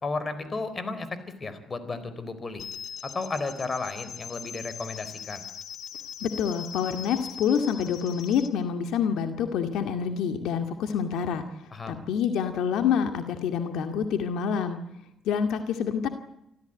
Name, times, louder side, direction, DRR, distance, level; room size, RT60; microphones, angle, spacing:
voice 1, 0.0-2.7 3.0-5.4 11.7-12.0, left 3 dB, 35° left, 12 dB, 4.2 m, -33 dB
sound 1, 2.6-8.5, left 8 dB, 70° left, 2.4 m, -41 dB
voice 2, 6.2-11.4 11.9-14.8 15.3-16.1, left 7 dB, 85° left, 7 dB, 2.1 m, -27 dB
27.0 x 14.5 x 9.1 m, 0.80 s
cardioid pair, 90°, 0 cm